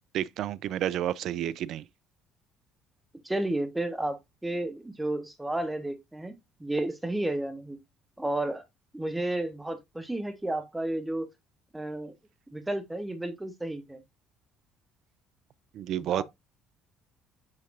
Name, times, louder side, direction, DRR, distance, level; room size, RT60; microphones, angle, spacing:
voice 1, 0.1-1.8 15.7-16.2, right 11 dB, 55° right, 0.4 m, -30 dB
voice 2, 3.2-6.3 6.6-7.8 8.2-8.6 8.9-11.3 11.7-12.1 12.5-14.0 16.0-16.2, right 1 dB, 10° right, 1.4 m, -32 dB
7.5 x 5.7 x 2.5 m
figure-of-eight pair, 50°, 0 cm